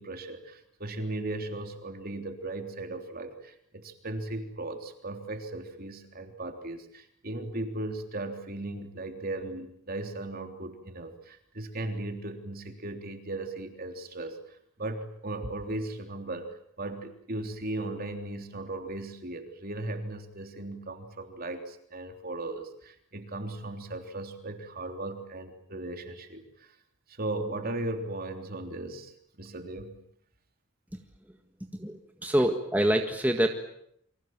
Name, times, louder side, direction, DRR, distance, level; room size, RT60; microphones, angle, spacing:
voice 1, 0.0-26.7 27.1-29.9 32.2-32.3, right 2 dB, 45° right, 5 dB, 3.4 m, -37 dB
voice 2, 31.7-33.5, right 1 dB, 10° right, 4 dB, 1.7 m, -26 dB
29.0 x 25.0 x 7.5 m, 0.73 s
head